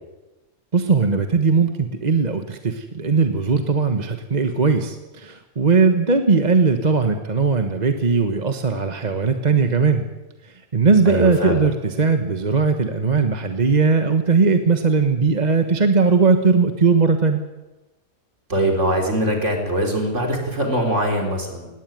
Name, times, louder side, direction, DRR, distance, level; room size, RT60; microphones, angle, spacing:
voice 1, 0.7-10.1 10.7-17.4, right 4 dB, 30° right, 7 dB, 1.3 m, -19 dB
voice 2, 11.1-11.6 18.5-21.7, equal, 50° right, 2 dB, 4.3 m, -22 dB
19.5 x 17.5 x 9.3 m, 1.1 s
omnidirectional pair, 1.5 m